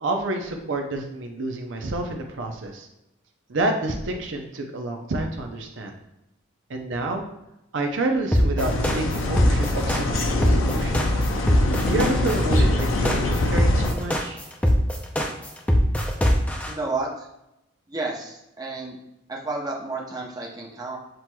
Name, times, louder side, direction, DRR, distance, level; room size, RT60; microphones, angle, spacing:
voice 1, 0.0-2.9 3.5-5.9 6.7-7.2 7.7-11.0 11.8-14.4, right 2 dB, 70° right, 3 dB, 0.6 m, -29 dB
sound 1, 8.3-16.7, equal, 5° left, 0.4 m, -21 dB
sound 2, 8.6-13.9, left 2 dB, 90° left, 0.6 m, -24 dB
voice 2, 16.7-17.3 17.9-19.0 19.3-21.0, right 3 dB, 20° right, -2 dB, 0.7 m, -31 dB
7.6 x 2.9 x 2.2 m, 0.88 s
head